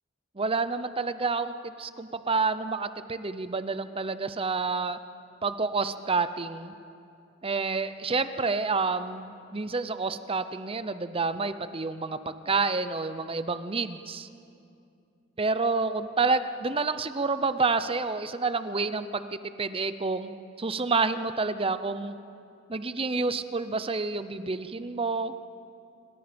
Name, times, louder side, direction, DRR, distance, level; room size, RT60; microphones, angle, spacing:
voice 1, 0.4-5.0 5.4-6.7 7.4-14.3 15.4-20.3 20.6-22.2 22.7-25.3, right 4 dB, 30° right, 12 dB, 0.7 m, -29 dB
27.0 x 23.5 x 5.2 m, 2.5 s
head